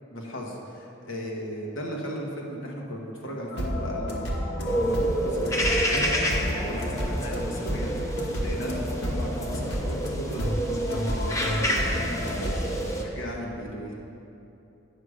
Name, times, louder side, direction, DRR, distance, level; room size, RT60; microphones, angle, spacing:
voice 1, 0.1-14.0, equal, 80° left, -2 dB, 1.2 m, -36 dB
sound 1, 3.5-12.6, equal, 60° left, 1.3 m, -30 dB
sound 2, 4.7-13.0, equal, 15° left, 0.6 m, -29 dB
9.5 x 6.3 x 4.9 m, 2.8 s
head